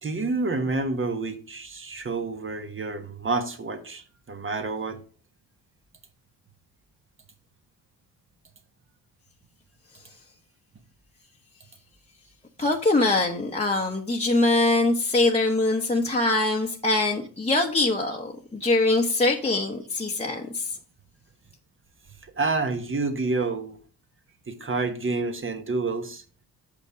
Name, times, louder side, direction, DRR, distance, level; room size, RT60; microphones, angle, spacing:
voice 1, 0.0-5.0 22.4-23.8 24.5-26.2, right 3 dB, 30° right, 1.3 m, -28 dB
voice 2, 12.6-20.7, left 2 dB, 15° left, 1.0 m, -23 dB
7.0 x 5.2 x 5.0 m
cardioid pair, 80°, 38 cm